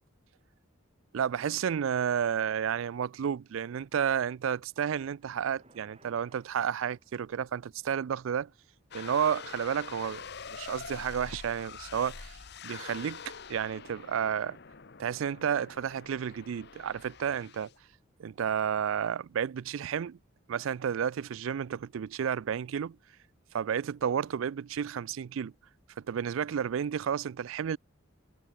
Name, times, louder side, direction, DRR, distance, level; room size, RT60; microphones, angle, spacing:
voice 1, 1.1-8.5 8.9-10.2 10.5-14.6 15.0-17.7 18.2-20.2 20.5-23.0 23.5-25.5 26.0-27.8, right 8 dB, 70° right, 0.4 m, -31 dB
sound 1, 5.2-7.5, right 2 dB, 30° right, 7.9 m, -62 dB
sound 2, 8.9-17.8, left 6 dB, 50° left, 0.9 m, -45 dB
head